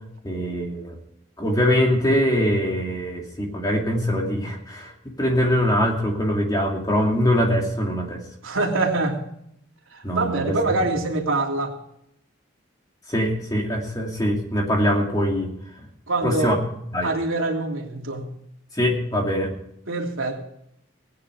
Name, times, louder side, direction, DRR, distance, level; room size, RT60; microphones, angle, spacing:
voice 1, 0.2-1.0 1.4-8.2 10.0-10.6 13.1-15.5 16.2-16.6 16.9-17.1 18.7-19.5, equal, 20° left, 1 dB, 2.5 m, -23 dB
voice 2, 8.4-9.2 9.9-11.7 16.1-16.5 17.0-18.3 19.9-20.4, right 2 dB, 80° right, 0 dB, 2.9 m, -24 dB
18.5 x 9.8 x 4.9 m, 0.74 s
head